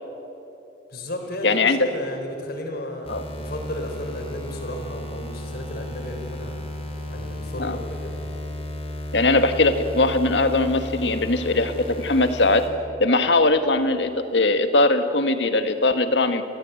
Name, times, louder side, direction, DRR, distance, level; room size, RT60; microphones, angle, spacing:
voice 1, 0.9-6.7 7.1-8.2, left 1 dB, 60° left, 4 dB, 3.8 m, -34 dB
voice 2, 1.4-1.8 3.1-3.2 7.6-7.8 9.1-12.7 13.0-16.4, left 2 dB, 75° left, 8 dB, 1.6 m, -20 dB
sound 1, 3.0-12.7, left 1 dB, 35° left, 3.9 m, -34 dB
29.5 x 14.5 x 9.2 m, 2.9 s
head